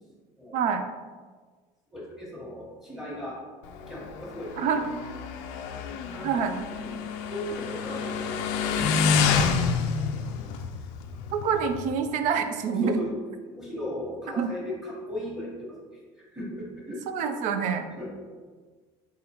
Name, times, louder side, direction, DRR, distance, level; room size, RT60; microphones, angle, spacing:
voice 1, 0.5-0.8 4.6-4.8 6.2-6.6 11.3-12.9 14.4-14.5 17.1-17.8, right 6 dB, 55° right, 7 dB, 0.5 m, -26 dB
voice 2, 1.9-3.4 3.9-4.7 5.7-6.5 6.8-7.0 7.2-9.2 12.7-13.1 13.4-17.0 17.9-18.2, left 1 dB, ahead, -5 dB, 1.3 m, -37 dB
Motorcycle, 3.6-11.9, left 5 dB, 80° left, 0.4 m, -28 dB
4.0 x 3.8 x 2.9 m, 1.5 s
cardioid pair, 125°, 15 cm